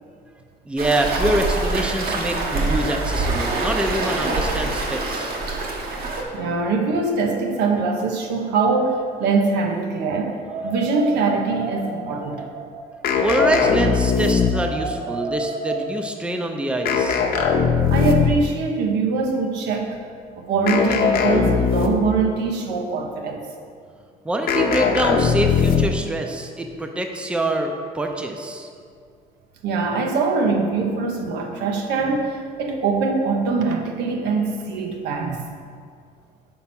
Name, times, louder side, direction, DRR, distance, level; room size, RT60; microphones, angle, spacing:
voice 1, 0.7-5.3 13.2-17.2 24.2-28.7, right 1 dB, 5° right, 3 dB, 0.5 m, -25 dB
Waves surf, 0.8-6.2, right 3 dB, 65° right, 1.1 m, -25 dB
voice 2, 6.3-12.5 17.9-20.0 20.3-23.5 29.6-35.5, right 4 dB, 85° right, 2 dB, 0.9 m, -23 dB
sound 1, 10.5-16.2, right 3 dB, 45° right, 0.8 m, -32 dB
sound 2, 13.0-14.8 16.9-18.5 20.7-22.2 24.5-26.1, left 6 dB, 60° left, 0.7 m, -20 dB
5.8 x 4.3 x 5.9 m, 2.2 s
cardioid pair, 110°, 17 cm